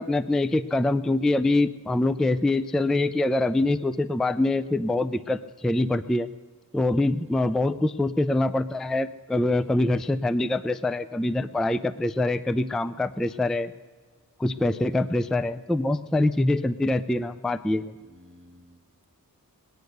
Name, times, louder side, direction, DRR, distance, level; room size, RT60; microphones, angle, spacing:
voice 1, 0.0-6.3 6.7-13.7 14.4-17.9, left 2 dB, ahead, 13 dB, 0.3 m, -24 dB
voice 2, 9.5-10.0 14.5-15.4 18.0-18.8, equal, 35° right, 4 dB, 1.6 m, -53 dB
20.5 x 9.4 x 6.6 m, 1.4 s
wide cardioid pair, 95°, 37 cm